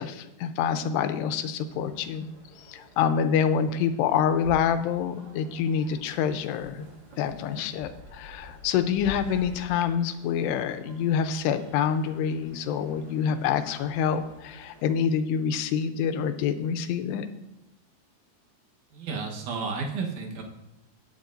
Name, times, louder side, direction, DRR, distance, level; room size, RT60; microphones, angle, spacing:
voice 1, 0.0-2.3 2.6-6.9 7.2-17.3, left 7 dB, 85° left, 9 dB, 2.8 m, -27 dB
sound 1, 1.6-14.8, left 1 dB, 45° right, 1.5 m, -49 dB
voice 2, 18.9-20.4, right 4 dB, 65° right, 1 dB, 2.2 m, -32 dB
20.0 x 7.5 x 2.6 m, 0.93 s
omnidirectional pair, 4.8 m